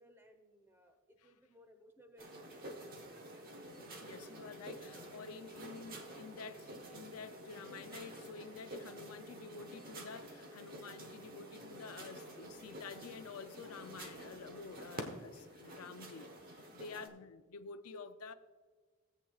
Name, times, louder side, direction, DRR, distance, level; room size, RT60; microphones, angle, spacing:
voice 1, 0.0-3.4, equal, 10° right, 0.9 m, -62 dB
sound 1, 2.2-17.1, right 1 dB, 40° right, 1.2 m, -49 dB
voice 2, 4.0-18.3, left 5 dB, 85° left, 0.5 m, -50 dB
16.5 x 8.3 x 2.4 m
head